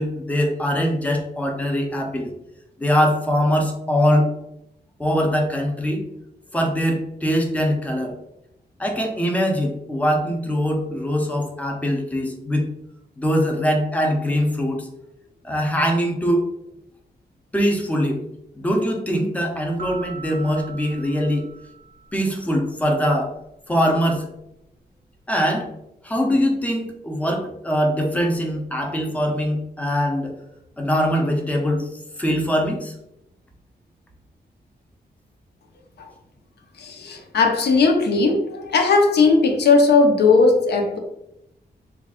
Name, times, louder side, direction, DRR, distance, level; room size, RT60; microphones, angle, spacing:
voice 1, 0.0-2.3 2.8-4.3 5.0-6.0 6.5-8.1 8.8-12.6 13.2-14.9 15.4-16.4 17.5-18.2 18.6-21.4 22.1-23.3 23.7-24.3 25.3-25.7 26.0-30.3 30.8-31.9 32.2-32.9, equal, 10° left, 2 dB, 0.5 m, -22 dB
sound 1, 19.8-22.6, right 6 dB, 55° right, 0.4 m, -40 dB
voice 2, 36.8-41.0, left 4 dB, 75° left, 3 dB, 0.6 m, -17 dB
3.3 x 2.3 x 3.5 m, 0.83 s
wide cardioid pair, 180°, 17 cm